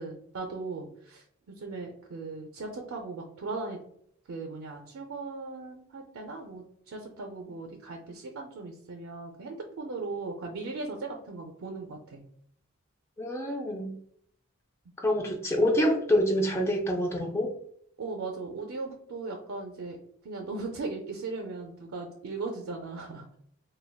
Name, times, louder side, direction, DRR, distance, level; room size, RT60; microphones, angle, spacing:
voice 1, 0.0-3.8 4.3-12.2 18.0-20.0 20.2-23.2, right 3 dB, 70° right, 2 dB, 0.4 m, -38 dB
voice 2, 13.2-13.9 15.0-17.5, equal, 10° left, 2 dB, 0.3 m, -26 dB
3.3 x 2.2 x 2.2 m, 0.66 s
head